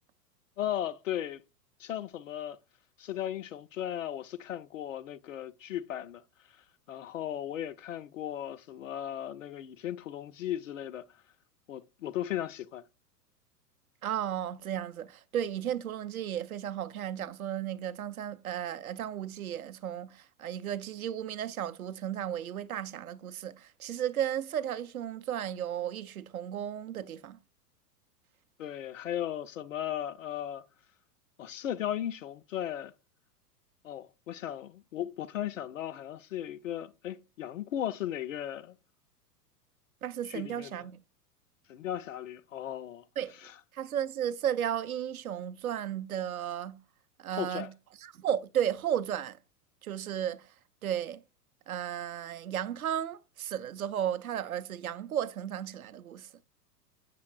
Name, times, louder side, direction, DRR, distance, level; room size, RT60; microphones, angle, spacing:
voice 1, 0.6-1.4 1.8-2.6 3.0-6.2 6.9-11.0 11.7-12.8 28.6-30.6 31.4-32.9 33.8-38.8 40.2-40.8 41.7-43.0 43.4-43.6 47.3-47.7, left 11 dB, 55° left, 0.5 m, -36 dB
voice 2, 14.0-27.4 40.0-41.0 43.2-43.3 43.7-46.8 47.2-47.7 48.0-49.4 49.8-50.4 50.8-51.2 51.7-56.3, right 10 dB, 60° right, 0.6 m, -34 dB
7.5 x 5.7 x 2.3 m
figure-of-eight pair, 100°, 48 cm